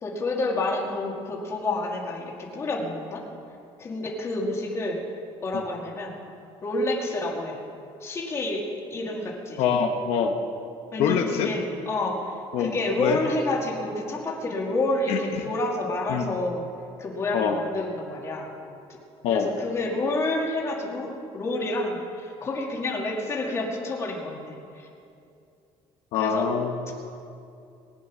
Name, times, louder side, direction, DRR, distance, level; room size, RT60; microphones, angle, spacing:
voice 1, 0.0-3.2 3.8-5.0 5.4-6.2 6.6-7.6 8.0-8.6 8.9-9.6 10.9-16.6 17.0-18.5 19.3-24.9 26.2-26.5 26.9-27.0, left 2 dB, 25° left, -1 dB, 2.0 m, -29 dB
voice 2, 9.6-10.3 11.0-11.5 12.5-13.2 15.1-15.4 16.1-16.3 17.3-17.6 19.2-19.5 26.1-26.9, left 7 dB, 70° left, 4 dB, 1.1 m, -25 dB
19.0 x 9.3 x 6.2 m, 2.6 s
cardioid pair, 165°, 11 cm